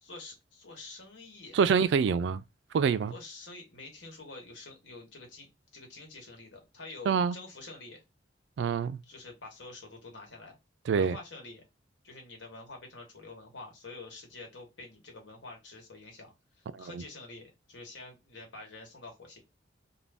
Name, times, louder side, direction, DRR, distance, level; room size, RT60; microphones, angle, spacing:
voice 1, 0.0-1.6 3.1-8.0 9.1-10.6 10.9-11.7 12.0-19.4, left 3 dB, 80° left, 1.3 m, -47 dB
voice 2, 1.5-2.4 2.7-3.1 7.1-7.4 8.6-9.0 10.9-11.2 16.7-16.9, right 6 dB, 70° right, 0.3 m, -26 dB
2.5 x 2.2 x 3.3 m
head